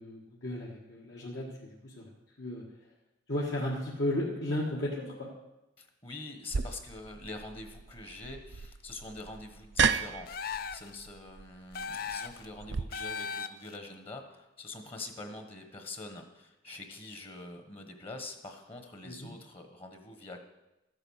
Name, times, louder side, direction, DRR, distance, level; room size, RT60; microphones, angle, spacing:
voice 1, 0.0-2.1 2.4-2.6 3.3-5.3 19.0-19.3, left 1 dB, 65° left, -4 dB, 1.7 m, -34 dB
voice 2, 5.8-20.4, left 2 dB, 30° left, 6 dB, 1.2 m, -45 dB
sound 1, 6.5-12.8, right 5 dB, 65° right, 0.5 m, -34 dB
sound 2, 10.3-10.9 11.7-12.4 12.9-13.8, left 6 dB, 50° left, 0.5 m, -37 dB
13.5 x 8.9 x 6.4 m, 0.98 s
head